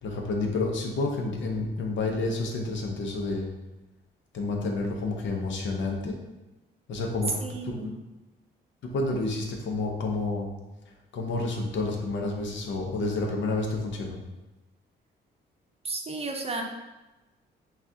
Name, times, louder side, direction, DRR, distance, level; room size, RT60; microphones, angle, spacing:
voice 1, 0.0-3.5 4.3-6.2 6.9-7.8 8.8-10.5 11.1-14.2, left 3 dB, 70° left, 1 dB, 0.8 m, -29 dB
voice 2, 7.4-7.9 15.8-16.6, right 3 dB, 30° right, 2 dB, 0.6 m, -33 dB
5.9 x 2.4 x 2.7 m, 1.1 s
cardioid pair, 90°, 20 cm